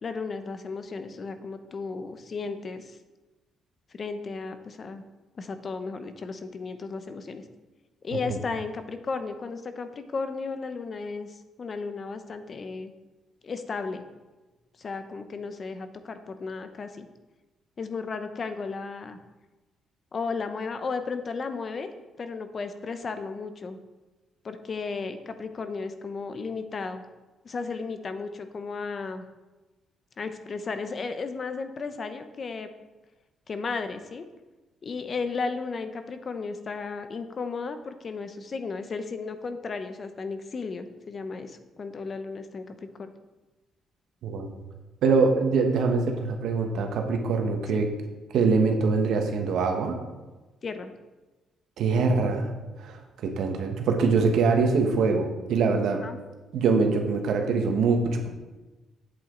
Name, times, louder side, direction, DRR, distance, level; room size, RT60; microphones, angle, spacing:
voice 1, 0.0-3.0 3.9-5.0 5.4-7.4 8.0-12.9 13.4-14.0 14.8-17.1 17.8-19.2 20.1-21.9 22.2-23.8 24.4-27.0 27.4-29.2 30.2-32.7 33.5-34.2 34.8-43.1 47.7-47.8 50.6-50.9 56.0-56.2, left 4 dB, 45° left, 9 dB, 0.8 m, -34 dB
voice 2, 44.2-44.5 45.0-47.9 48.3-50.0 51.8-52.5 52.8-56.0 56.5-58.3, right 4 dB, 75° right, 4 dB, 1.3 m, -23 dB
8.2 x 7.9 x 3.9 m, 1.2 s
cardioid pair, 90°, 0 cm